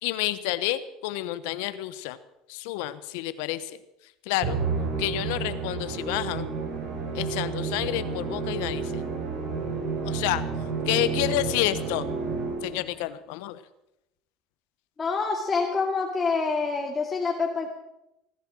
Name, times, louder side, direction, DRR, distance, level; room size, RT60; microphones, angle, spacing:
voice 1, 0.0-2.2 2.5-3.8 4.2-4.6 5.0-6.5 7.1-9.0 10.0-10.4 10.8-12.1 12.6-13.6, left 15 dB, 75° left, 14 dB, 1.0 m, -29 dB
Musical instrument, 4.4-12.9, right 4 dB, 65° right, 4.1 m, -30 dB
voice 2, 15.0-17.7, left 4 dB, 25° left, 0 dB, 2.2 m, -26 dB
19.0 x 10.5 x 6.2 m, 0.88 s
supercardioid pair, 90°, 0 cm